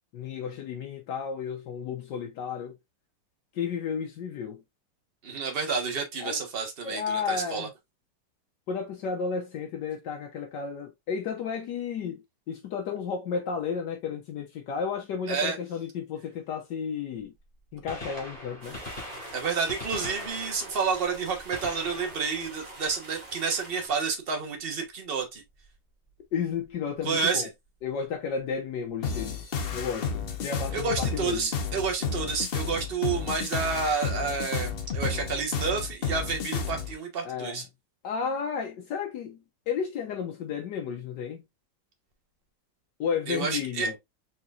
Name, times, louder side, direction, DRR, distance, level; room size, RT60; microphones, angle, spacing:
voice 1, 0.1-2.8 3.5-4.6 6.2-6.4 6.8-7.7 8.7-17.3 17.7-18.8 26.3-27.5 27.8-29.4 29.7-31.5 37.2-37.6 38.0-41.4 43.0-44.0, left 6 dB, 75° left, 1.4 m, -33 dB
voice 2, 5.2-7.7 15.3-15.6 19.3-25.4 27.0-27.5 30.7-37.6 43.3-43.9, right 5 dB, 35° right, 1.1 m, -30 dB
Gunshot gunfire, 17.7-23.6 25.5-25.7 26.7-26.8 28.4-28.5 29.9-30.0 30.1-30.2, left 1 dB, 20° left, 2.0 m, -42 dB
sound 1, 18.6-23.9, right 2 dB, 55° right, 2.5 m, -46 dB
sound 2, 29.0-36.9, left 5 dB, 55° left, 0.6 m, -31 dB
4.3 x 3.8 x 2.4 m
omnidirectional pair, 1.9 m